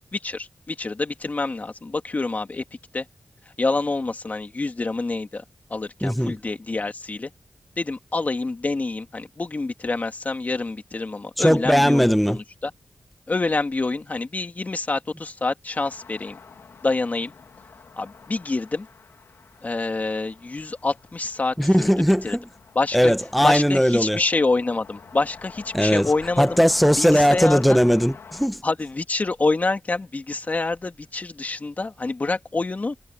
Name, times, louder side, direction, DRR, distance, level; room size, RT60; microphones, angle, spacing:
voice 1, 0.1-2.6 2.9-3.1 3.6-5.4 5.7-7.3 7.8-12.7 13.3-16.4 16.8-17.3 18.0-18.9 19.6-21.9 22.2-22.4 22.7-23.1 23.4-26.6 27.0-27.8 28.6-32.9, left 3 dB, 40° left, 2.4 m, -27 dB
voice 2, 6.0-6.4 11.4-12.4 21.6-22.5 22.9-24.2 25.7-26.1 26.4-28.6, equal, ahead, 0.7 m, -19 dB
sound 1, 15.7-28.5, left 5 dB, 85° left, 2.0 m, -45 dB
wide cardioid pair, 75°, 4 cm